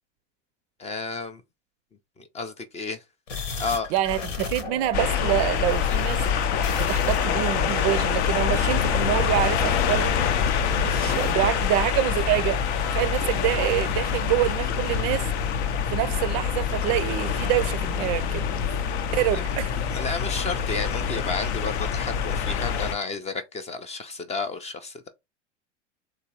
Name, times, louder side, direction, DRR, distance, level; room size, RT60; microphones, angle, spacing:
voice 1, 0.8-1.4 2.2-3.0 3.6-3.9 19.3-19.5 19.9-25.1, left 4 dB, 20° left, 0.4 m, -32 dB
sound 1, 3.3-11.3, left 4 dB, 85° left, 1.2 m, -33 dB
voice 2, 3.9-6.2 6.8-10.3 10.8-15.3 15.9-18.4 19.1-19.7, right 14 dB, 40° right, 0.4 m, -26 dB
sound 2, 4.9-23.0, left 7 dB, 65° left, 0.7 m, -25 dB
3.6 x 3.1 x 2.9 m
hypercardioid pair, 100°, 36 cm